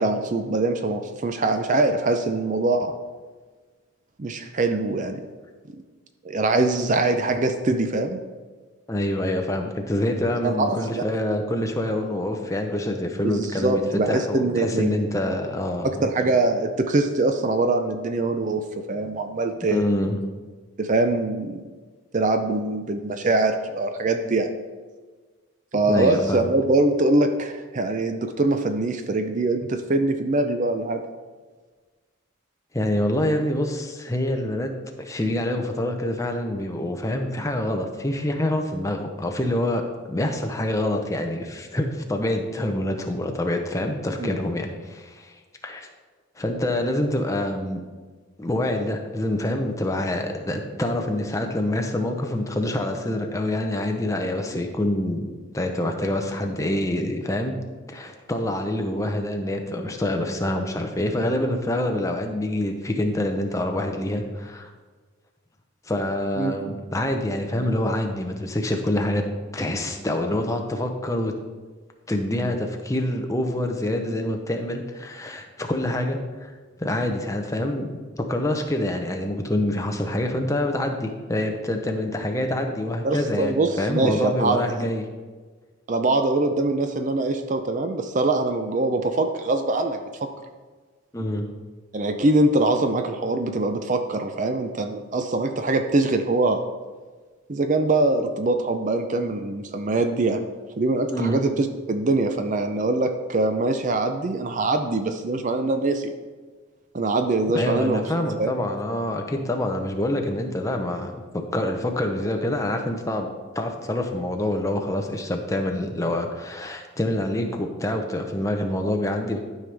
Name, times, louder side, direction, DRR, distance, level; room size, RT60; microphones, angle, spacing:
voice 1, 0.0-2.9 4.2-5.2 5.7-5.8 6.2-8.2 10.4-11.0 13.2-15.1 16.0-19.8 20.8-21.6 22.1-24.5 25.7-31.0 44.2-44.3 66.4-66.6 83.0-84.9 85.9-90.3 91.9-96.6 97.5-100.4 100.8-106.1 106.9-108.0 108.4-108.5, right 2 dB, 35° right, 7 dB, 0.5 m, -23 dB
voice 2, 8.9-16.1 19.7-20.2 25.9-26.5 32.7-34.7 35.0-39.8 40.1-45.3 45.6-45.9 46.4-47.8 48.4-55.3 55.5-57.6 57.9-64.7 65.9-69.2 69.5-71.3 72.1-76.5 76.8-85.0 91.1-91.5 101.1-101.4 107.5-113.3 113.5-119.4, left 1 dB, 15° left, 3 dB, 0.7 m, -26 dB
12.5 x 5.5 x 3.4 m, 1.4 s
head